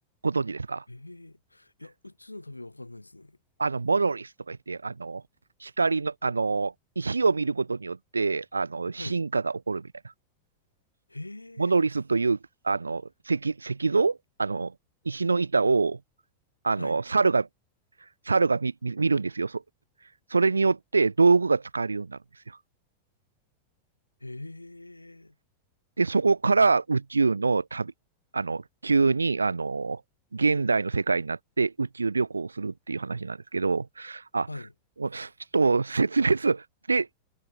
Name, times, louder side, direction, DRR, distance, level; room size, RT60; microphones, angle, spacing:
voice 1, 0.2-0.8 3.6-5.2 5.6-9.9 11.6-12.4 12.6-14.7 15.1-16.0 16.6-17.5 18.3-19.6 20.3-22.2 26.0-27.9 28.3-30.0 30.3-34.5 35.0-37.2, right 4 dB, 80° right, 0.5 m, -25 dB
voice 2, 0.9-3.4 8.9-9.2 11.1-11.7 16.7-17.0 24.2-25.4 34.5-34.7, left 2 dB, 85° left, 6.0 m, -42 dB
figure-of-eight pair, 90°, 0 cm